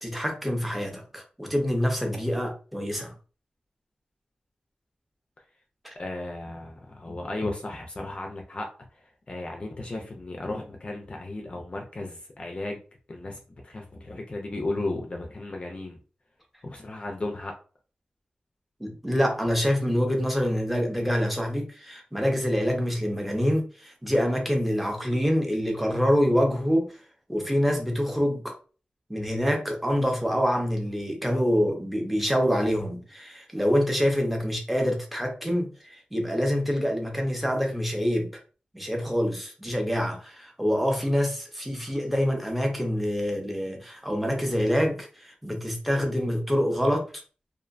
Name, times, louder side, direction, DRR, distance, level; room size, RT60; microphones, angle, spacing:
voice 1, 0.0-3.1 5.8-5.9 18.8-27.0 27.3-28.5 29.1-38.3 38.7-47.0, equal, 5° right, 1 dB, 0.6 m, -26 dB
voice 2, 6.0-8.7 8.9-12.8 13.1-16.0 16.6-17.5, left 2 dB, 40° left, 2 dB, 0.4 m, -35 dB
2.5 x 2.1 x 2.5 m, 0.38 s
wide cardioid pair, 120°, 3 cm